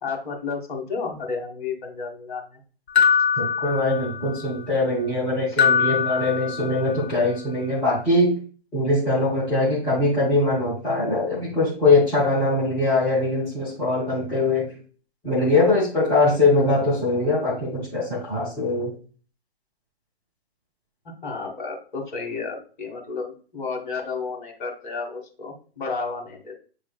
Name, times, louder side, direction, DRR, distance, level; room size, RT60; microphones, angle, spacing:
voice 1, 0.0-2.6 21.0-26.5, left 4 dB, 50° left, 2 dB, 1.3 m, -32 dB
sound 1, 3.0-4.4 5.6-7.0, left 7 dB, 80° left, 0.7 m, -22 dB
voice 2, 3.4-8.3 8.7-14.7 15.2-18.9, left 2 dB, 5° left, -9 dB, 0.4 m, -22 dB
7.3 x 3.2 x 2.3 m, 0.39 s
figure-of-eight pair, 125°, 32 cm